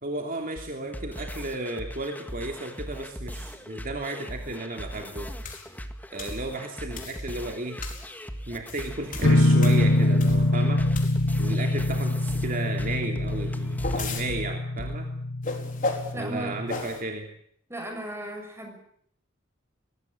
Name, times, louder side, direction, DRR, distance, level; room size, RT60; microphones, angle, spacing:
voice 1, 0.0-5.3 6.1-7.8 8.5-10.9 11.4-15.1 16.1-17.3, right 2 dB, 45° right, 3 dB, 2.9 m, -34 dB
sound 1, 0.6-14.9, equal, 10° left, 1.9 m, -39 dB
sound 2, 5.4-5.7 6.2-6.4 6.9-7.3 7.8-8.1 8.5-10.5 10.9-11.4 13.4-14.3 15.4-16.1 16.7-17.0, left 3 dB, 45° left, 4.6 m, -34 dB
sound 3, 9.2-16.8, left 1 dB, 80° left, 1.6 m, -24 dB
voice 2, 16.1-16.6 17.7-18.8, right 1 dB, 15° right, 4 dB, 6.4 m, -36 dB
22.5 x 18.5 x 8.8 m, 0.68 s
head